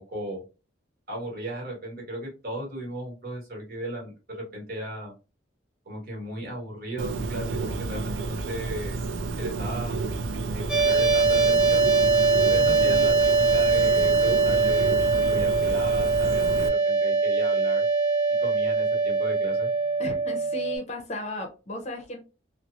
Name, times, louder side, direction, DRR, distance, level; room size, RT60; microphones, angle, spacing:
voice 1, 0.1-0.4 1.1-5.1 5.8-9.0 9.4-10.0 10.5-11.9 12.5-17.8 18.4-19.7, right 1 dB, 50° right, -1 dB, 1.2 m, -36 dB
Bird, 7.0-16.7, right 3 dB, 75° right, 0.4 m, -31 dB
sound 1, 10.7-20.8, right 4 dB, 5° right, 0.8 m, -22 dB
voice 2, 20.0-22.2, left 1 dB, 35° left, 4 dB, 0.6 m, -35 dB
2.9 x 2.0 x 2.4 m, 0.31 s
head